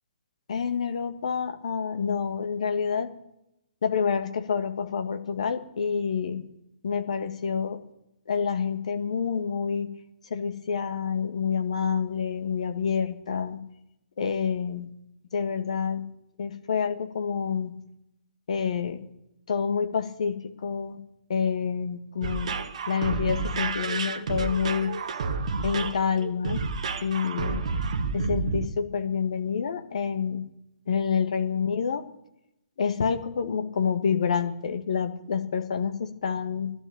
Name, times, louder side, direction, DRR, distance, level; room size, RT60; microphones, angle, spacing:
voice 1, 0.5-3.1 3.8-6.4 6.8-7.8 8.3-9.9 10.3-13.6 14.2-14.9 15.3-16.1 16.4-17.7 18.5-19.0 19.5-21.0 21.3-22.6 22.9-24.9 25.6-26.6 27.0-27.6 28.1-30.4 30.9-32.0 32.8-36.7, left 6 dB, 50° left, 7 dB, 1.7 m, -28 dB
sound 1, 22.2-28.7, right 4 dB, 45° right, 1.2 m, -30 dB
15.0 x 12.0 x 6.9 m, 0.84 s
figure-of-eight pair, 130°, 5 cm